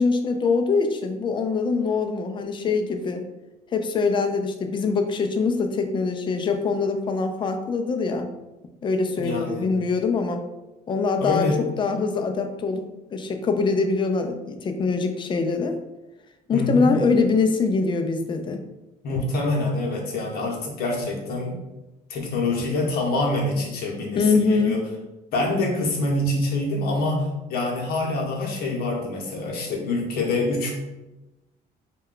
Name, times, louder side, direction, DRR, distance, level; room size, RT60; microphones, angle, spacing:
voice 1, 0.0-3.2 3.7-8.3 8.8-10.4 10.9-11.5 11.8-12.8 13.1-15.8 16.5-18.6 24.2-24.8, left 4 dB, 30° left, 6 dB, 0.3 m, -23 dB
voice 2, 9.2-9.7 11.2-11.6 16.5-16.9 19.0-21.6 22.1-24.8 25.3-30.7, left 2 dB, 65° left, 0 dB, 0.8 m, -25 dB
2.2 x 2.2 x 3.6 m, 1.0 s
cardioid pair, 110°, 17 cm